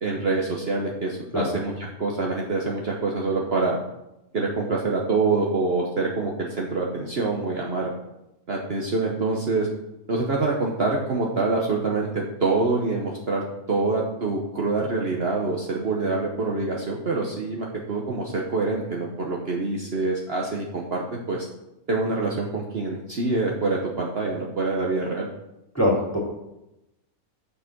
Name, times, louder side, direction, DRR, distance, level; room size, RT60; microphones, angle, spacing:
voice 1, 0.0-3.8 4.3-7.9 8.5-9.7 10.1-21.4 21.9-25.3, right 3 dB, 45° right, -1 dB, 1.2 m, -26 dB
voice 2, 25.7-26.2, left 1 dB, 10° left, -3 dB, 2.6 m, -22 dB
7.6 x 6.5 x 6.0 m, 0.91 s
omnidirectional pair, 1.5 m